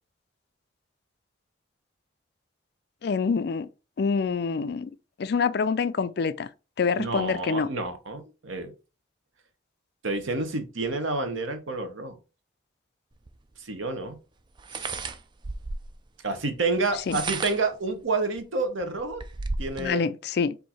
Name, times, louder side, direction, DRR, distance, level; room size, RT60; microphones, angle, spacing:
voice 1, 3.0-3.7 4.0-4.9 5.2-6.5 6.8-7.7 17.1-17.2 19.8-20.6, left 5 dB, 55° left, 0.3 m, -26 dB
voice 2, 7.0-8.7 10.0-12.2 13.6-14.2 14.7-14.9 16.2-19.2 19.6-20.1, right 3 dB, 80° right, 0.9 m, -29 dB
sound 1, 13.3-13.4 14.6-16.0 16.9-17.8 18.4-18.5 18.8-19.9, right 3 dB, 25° right, 0.3 m, -33 dB
4.6 x 2.7 x 4.2 m
head